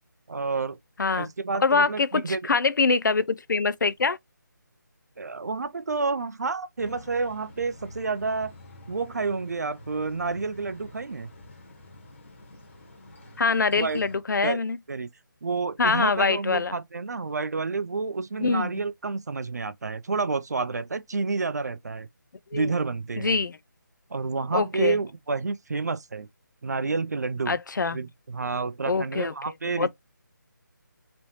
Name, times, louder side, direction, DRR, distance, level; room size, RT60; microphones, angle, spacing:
voice 1, 0.3-0.8 1.1-2.4 5.2-8.5 8.9-11.3 13.7-14.0 14.4-14.6 14.9-15.1 15.4-22.1 22.5-23.4 24.1-26.3 26.6-27.6 27.9-29.9, right 4 dB, 55° right, 0.4 m, -29 dB
voice 2, 1.6-4.2 13.4-14.8 15.8-16.7 18.4-18.7 22.5-22.7 23.2-23.6 24.5-25.0 27.5-28.0 28.9-29.3 29.7-29.9, left 4 dB, 65° left, 0.4 m, -24 dB
sound 1, 6.8-14.2, left 1 dB, 40° left, 1.3 m, -47 dB
3.1 x 3.0 x 2.7 m
figure-of-eight pair, 180°, 11 cm